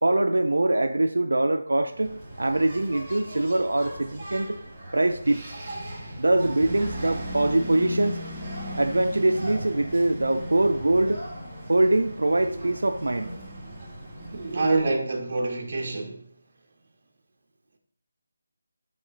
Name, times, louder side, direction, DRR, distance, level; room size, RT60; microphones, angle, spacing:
voice 1, 0.0-4.6 4.9-5.4 6.2-8.3 8.7-11.2 11.7-13.3, right 2 dB, 90° right, 0.4 m, -23 dB
Engine, 1.9-14.9, equal, 15° right, 1.4 m, -37 dB
voice 2, 14.3-16.3, right 3 dB, 40° right, 1.0 m, -26 dB
8.0 x 3.2 x 4.0 m
figure-of-eight pair, 170°, 0 cm